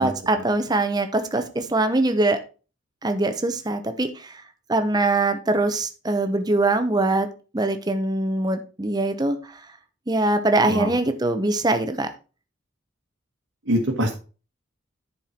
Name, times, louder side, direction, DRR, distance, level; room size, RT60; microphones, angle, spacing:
voice 1, 0.0-2.4 3.0-4.4 4.7-7.3 7.5-9.7 10.1-12.1, right 2 dB, 20° right, 8 dB, 0.8 m, -23 dB
voice 2, 13.7-14.1, equal, 75° right, -1 dB, 1.5 m, -23 dB
10.5 x 4.5 x 4.4 m, 0.35 s
head